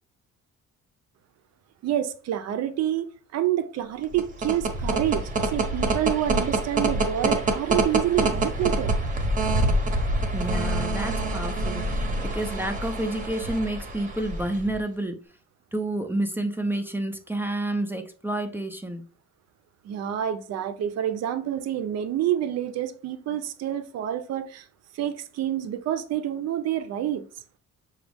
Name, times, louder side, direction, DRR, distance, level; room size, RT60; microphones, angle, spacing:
voice 1, 1.8-8.9 19.8-24.7 24.9-27.3, right 11 dB, 60° right, 0.5 m, -28 dB
sound 1, 4.0-14.8, right 2 dB, 25° right, 0.7 m, -26 dB
voice 2, 10.3-15.2 15.7-19.0, right 1 dB, 10° right, 0.4 m, -29 dB
6.0 x 2.3 x 3.4 m
cardioid pair, 155°, 29 cm